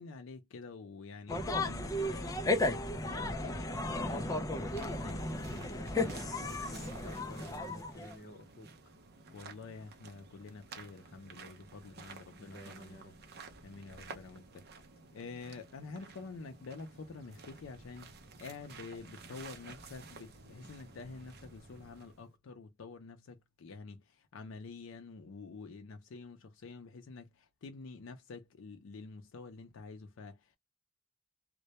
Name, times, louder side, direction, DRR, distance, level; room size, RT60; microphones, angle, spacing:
voice 1, 0.0-4.4 4.9-5.3 9.3-13.0 13.6-14.6 15.1-18.1 18.4-30.6, left 4 dB, 80° left, 0.4 m, -48 dB
sound 1, 1.3-8.2, left 2 dB, 15° left, 0.3 m, -35 dB
sound 2, 4.0-22.3, right 4 dB, 55° right, 0.6 m, -53 dB
voice 2, 4.6-8.7 12.4-13.5, left 1 dB, 50° left, 0.8 m, -52 dB
2.2 x 2.1 x 2.7 m
head